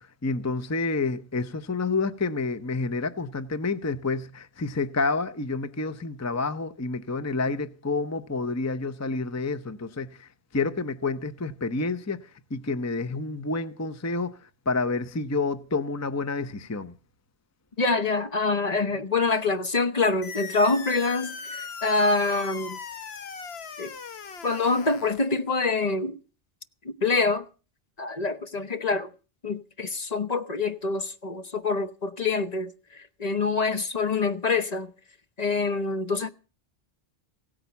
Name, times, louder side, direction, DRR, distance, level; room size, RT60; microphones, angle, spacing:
voice 1, 0.0-10.3 10.5-12.2 12.5-14.3 14.7-16.9, left 3 dB, 20° left, 0.7 m, -29 dB
voice 2, 17.8-22.8 23.8-23.9 24.4-26.2 27.0-27.4 28.0-29.1 29.4-34.9 35.4-36.3, left 3 dB, 40° left, 1.0 m, -26 dB
sound 1, 20.2-25.2, left 6 dB, 80° left, 1.2 m, -39 dB
17.0 x 8.9 x 6.9 m
omnidirectional pair, 1.0 m